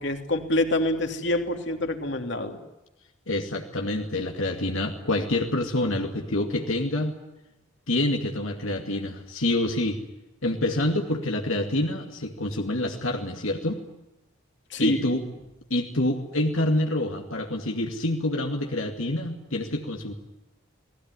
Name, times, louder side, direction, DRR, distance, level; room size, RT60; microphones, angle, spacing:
voice 1, 0.0-2.6 14.7-15.0, left 1 dB, 55° left, 5 dB, 3.0 m, -26 dB
voice 2, 3.3-7.2 7.9-10.0 10.4-13.8 14.8-15.3 15.7-20.1, left 1 dB, 75° left, 2 dB, 2.4 m, -27 dB
29.5 x 20.0 x 9.8 m, 0.97 s
head